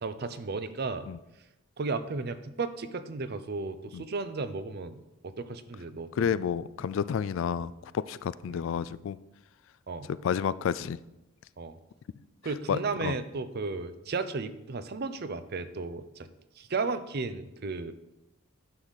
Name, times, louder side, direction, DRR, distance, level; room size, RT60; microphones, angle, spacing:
voice 1, 0.0-1.1 1.8-6.3 8.5-8.6 9.9-10.1 11.6-11.8 12.4-16.3 16.6-17.9, right 3 dB, 50° right, 11 dB, 0.6 m, -34 dB
voice 2, 6.1-9.2 10.1-11.0 12.7-13.2, left 7 dB, 65° left, 17 dB, 0.3 m, -30 dB
9.6 x 6.4 x 4.0 m, 0.93 s
head